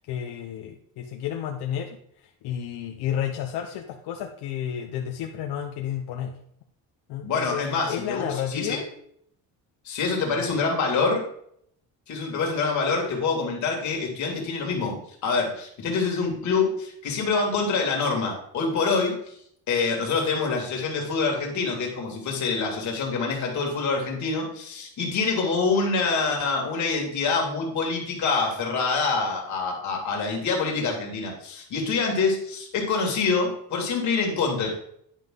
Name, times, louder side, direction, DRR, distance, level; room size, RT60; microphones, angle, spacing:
voice 1, 0.1-2.0 2.4-6.4 7.1-8.9 10.4-10.5, left 9 dB, 80° left, 4 dB, 0.8 m, -31 dB
voice 2, 7.2-8.2 8.5-8.8 9.9-11.3 12.1-19.4 19.7-34.7, left 4 dB, 45° left, 0 dB, 2.2 m, -26 dB
10.0 x 5.5 x 3.7 m, 0.69 s
cardioid pair, 175°, 39 cm